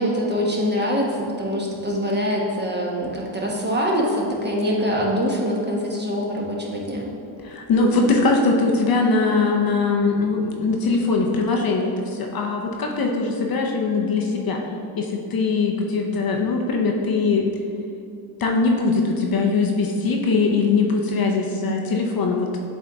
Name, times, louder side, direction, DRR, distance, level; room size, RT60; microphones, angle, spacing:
voice 1, 0.0-7.1, equal, 20° right, -2 dB, 1.3 m, -24 dB
voice 2, 7.4-14.6 15.0-17.5 18.4-22.6, left 3 dB, 45° left, 1 dB, 0.8 m, -21 dB
7.9 x 3.6 x 3.6 m, 2.6 s
supercardioid pair, 65°, 48 cm